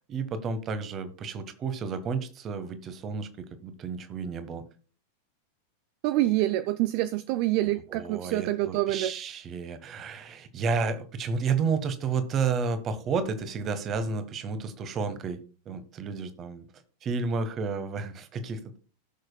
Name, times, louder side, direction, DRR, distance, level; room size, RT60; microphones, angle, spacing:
voice 1, 0.1-4.6 7.9-15.4 15.6-16.7 17.0-18.8, right 5 dB, 30° right, 1.3 m, -31 dB
voice 2, 6.0-9.1, right 15 dB, 45° right, 0.4 m, -26 dB
18.5 x 6.3 x 2.3 m
figure-of-eight pair, 90°, 0 cm